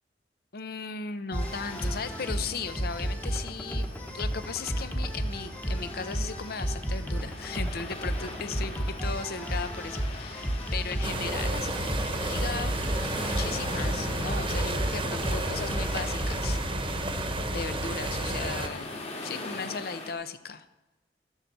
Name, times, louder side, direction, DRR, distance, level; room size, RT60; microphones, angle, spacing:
voice 1, 0.5-12.8 13.2-16.6 17.5-18.9 19.2-20.7, left 5 dB, 60° left, 12 dB, 0.7 m, -37 dB
sound 1, 1.3-16.6, equal, 10° left, 1.1 m, -32 dB
sound 2, 1.4-20.1, left 2 dB, 40° left, 1.9 m, -43 dB
sound 3, 11.0-18.7, right 1 dB, 30° right, 1.1 m, -31 dB
12.5 x 7.3 x 6.7 m, 1.0 s
head